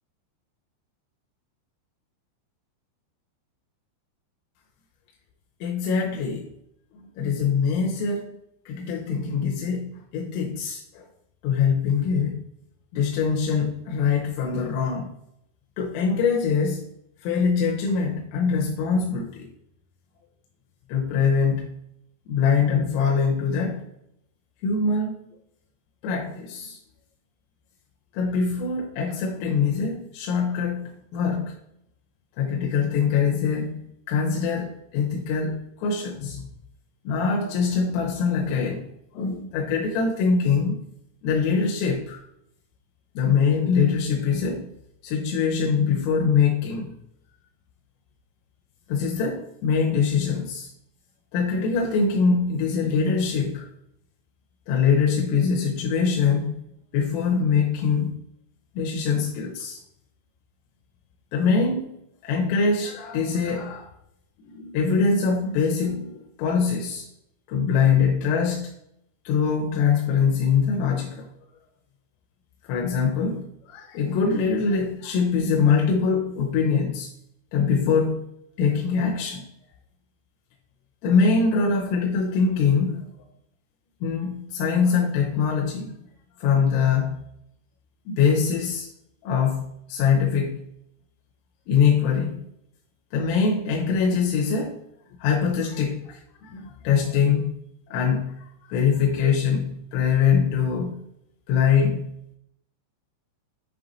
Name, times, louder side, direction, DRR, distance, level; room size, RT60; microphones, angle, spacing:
voice 1, 5.6-6.5 6.9-8.3 8.7-11.1 11.4-12.4 12.9-15.1 15.8-16.9 17.2-19.5 20.9-21.7 22.3-23.8 24.6-25.2 26.0-26.8 28.1-31.6 32.4-36.4 37.1-38.9 39.1-40.8 41.2-42.2 43.2-44.7 45.0-47.0 48.9-50.7 51.3-53.7 54.7-56.6 56.9-58.2 58.8-59.8 61.3-61.9 62.2-63.9 64.5-67.1 67.5-68.7 69.3-71.3 72.6-77.1 77.5-79.4 81.0-83.1 84.0-85.9 86.4-87.2 88.1-88.9 89.2-90.6 91.7-92.4 93.1-94.8 95.2-97.5 97.9-101.0 101.5-102.1, left 5 dB, 85° left, 0 dB, 3.3 m, -23 dB
8.4 x 3.4 x 4.0 m, 0.76 s
omnidirectional pair, 5.8 m